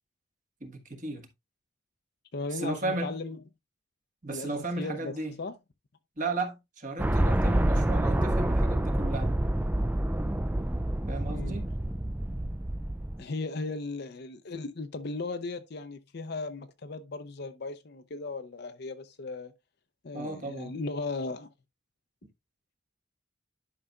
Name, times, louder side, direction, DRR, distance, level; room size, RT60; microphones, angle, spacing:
voice 1, 0.6-1.2 2.5-3.2 4.2-5.3 6.2-9.3 11.1-11.7 20.1-20.7, right 2 dB, 40° right, 1.3 m, -34 dB
voice 2, 2.3-3.4 4.3-4.5 4.8-5.5 11.3-11.6 13.2-19.5 20.0-21.5, left 3 dB, 55° left, 0.6 m, -36 dB
sound 1, 7.0-13.2, right 1 dB, 10° right, 0.3 m, -27 dB
11.0 x 5.5 x 2.4 m
head